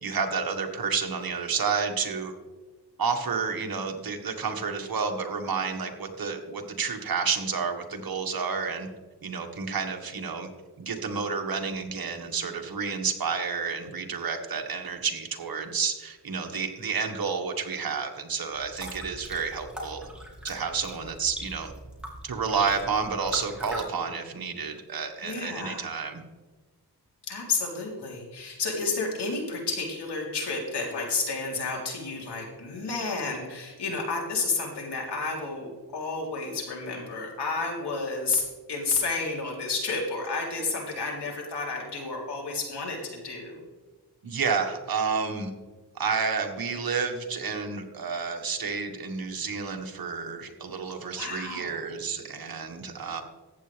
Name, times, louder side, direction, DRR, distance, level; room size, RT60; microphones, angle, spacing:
voice 1, 0.0-2.3 3.0-8.9 9.2-10.5 10.8-20.1 20.4-21.7 22.2-26.2 44.2-45.5 45.9-53.2, right 5 dB, 60° right, 4 dB, 1.6 m, -30 dB
sound 1, 18.5-23.8, right 1 dB, ahead, 3.1 m, -41 dB
voice 2, 25.2-25.9 27.3-43.6 51.2-51.8, left 3 dB, 80° left, -1 dB, 3.5 m, -31 dB
14.5 x 9.1 x 3.4 m, 1.3 s
cardioid pair, 80°, 40 cm